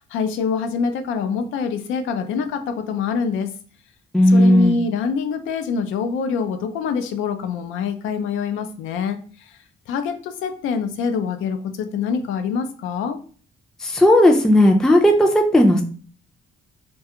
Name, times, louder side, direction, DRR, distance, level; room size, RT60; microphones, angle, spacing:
voice 1, 0.0-3.5 4.3-9.6 9.9-13.2, left 5 dB, 85° left, 8 dB, 0.4 m, -25 dB
voice 2, 4.1-4.8 13.8-15.8, left 1 dB, 5° left, 1 dB, 0.4 m, -14 dB
2.4 x 2.2 x 2.8 m, 0.42 s
cardioid pair, 90°, 20 cm